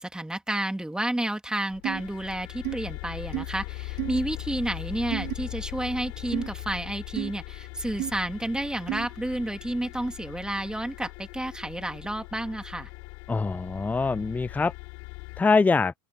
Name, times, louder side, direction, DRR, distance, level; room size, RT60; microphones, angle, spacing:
voice 1, 0.0-12.9, right 1 dB, 5° right, 2.8 m, -31 dB
sound 1, 1.7-15.4, left 33 dB, 65° left, 5.9 m, -40 dB
sound 2, 1.8-2.0 2.6-2.8 3.3-3.5 4.0-4.2 5.1-5.3 6.3-6.5 7.1-7.3 8.0-8.1 8.9-9.1, right 20 dB, 55° right, 0.4 m, -31 dB
voice 2, 13.3-14.7 15.4-15.9, left 4 dB, 10° left, 0.3 m, -23 dB
open air
hypercardioid pair, 90°, 16 cm